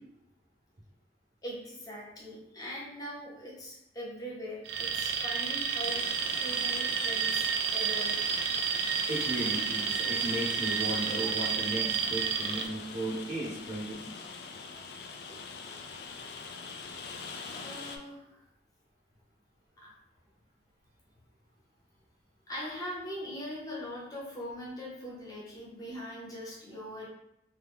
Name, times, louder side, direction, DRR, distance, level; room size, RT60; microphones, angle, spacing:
voice 1, 1.4-6.0 6.4-8.2 15.3-15.4 17.4-18.4 19.8-19.9 22.5-27.1, equal, 20° left, -5 dB, 0.8 m, -41 dB
Alarm, 4.7-12.7, right 6 dB, 65° right, 0.3 m, -31 dB
Rain, 5.8-18.0, left 5 dB, 65° left, 0.3 m, -43 dB
voice 2, 9.1-14.1, right 1 dB, 45° right, -6 dB, 0.7 m, -35 dB
3.0 x 2.2 x 3.4 m, 0.82 s
head